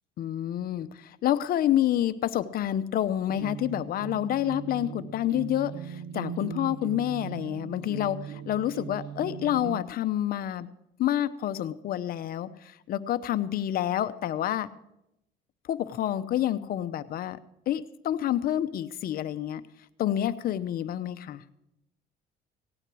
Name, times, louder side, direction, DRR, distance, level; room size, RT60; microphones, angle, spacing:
voice 1, 0.2-10.7 11.0-14.7 15.7-17.4 17.7-19.6 20.0-21.4, left 12 dB, 60° left, 13 dB, 0.8 m, -28 dB
sound 1, 3.3-9.8, right 8 dB, 80° right, 0.9 m, -39 dB
17.0 x 8.9 x 6.2 m, 0.84 s
cardioid pair, 110°, 17 cm